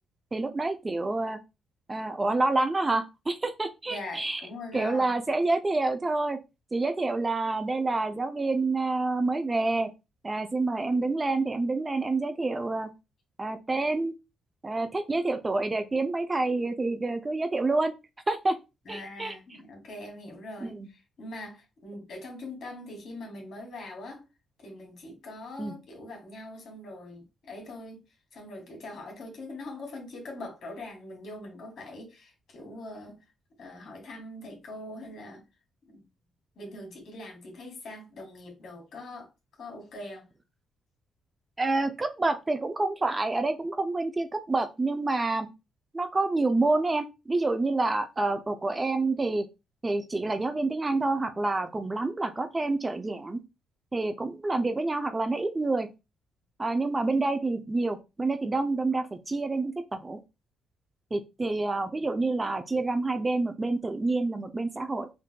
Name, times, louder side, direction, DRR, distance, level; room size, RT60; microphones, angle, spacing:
voice 1, 0.3-1.4 1.9-4.4 4.7-6.4 6.7-9.9 10.2-12.9 13.4-14.1 14.6-17.9 18.3-18.6 18.9-19.3 20.6-20.9 25.6-25.7 41.6-45.5 45.9-49.5 49.8-53.4 53.9-55.9 56.6-60.2 61.1-65.1, right 2 dB, 20° right, 0.4 m, -28 dB
voice 2, 3.9-5.1 18.9-24.3 24.6-28.0 28.3-33.2 33.6-35.4 35.9-36.1 36.6-39.3 39.6-40.3, left 2 dB, 60° left, 1.7 m, -42 dB
5.1 x 2.6 x 2.3 m
cardioid pair, 90°, 0 cm